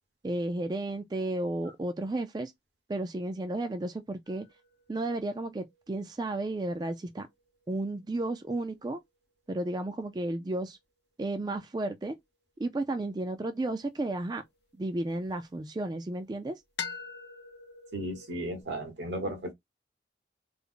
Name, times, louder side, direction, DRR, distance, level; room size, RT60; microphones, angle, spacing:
voice 1, 0.2-2.5 2.9-4.5 4.9-7.3 7.7-9.0 9.5-10.8 11.2-12.2 12.6-14.4 14.8-16.6, right 2 dB, 25° right, 0.3 m, -33 dB
sound 1, 4.3-8.6 12.9-15.4 16.8-18.6, left 5 dB, 80° left, 0.8 m, -45 dB
voice 2, 17.9-19.5, right 1 dB, 80° right, 1.3 m, -35 dB
3.3 x 2.0 x 3.7 m
head